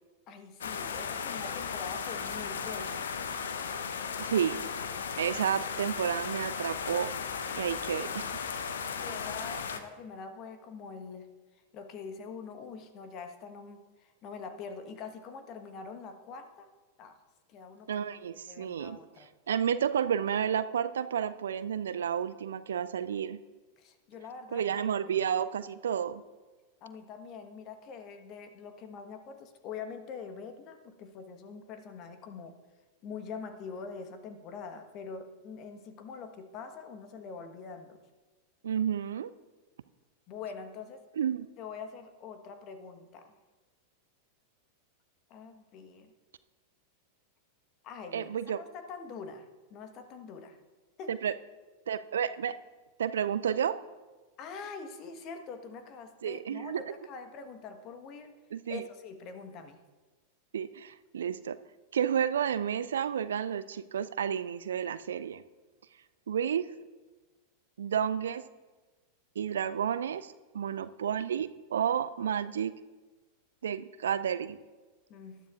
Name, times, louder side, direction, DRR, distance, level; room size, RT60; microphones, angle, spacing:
voice 1, 0.3-3.1 8.9-11.3 11.7-16.7 17.0-17.2 17.5-18.0 18.4-19.3 23.8-24.8 25.1-25.2 26.8-32.6 33.0-38.0 40.3-41.0 41.6-43.3 45.3-46.1 47.8-50.6 51.0-51.1 54.4-58.4 58.7-59.8 75.1-75.4, left 5 dB, 35° left, 8 dB, 1.2 m, -44 dB
sound 1, 0.6-9.8, left 6 dB, 65° left, 0.8 m, -36 dB
voice 2, 4.2-4.6 5.2-7.1 7.6-8.3 17.9-19.0 19.5-23.4 24.5-26.2 38.6-39.3 41.2-41.5 48.1-48.6 51.1-51.3 51.9-52.5 53.0-53.8 56.2-56.8 58.5-58.8 60.5-61.6 61.9-65.4 66.3-66.7 67.8-68.4 69.4-72.7 73.6-74.6, right 8 dB, 65° right, 14 dB, 0.4 m, -31 dB
19.5 x 12.0 x 2.5 m, 1.3 s
figure-of-eight pair, 90°, 0 cm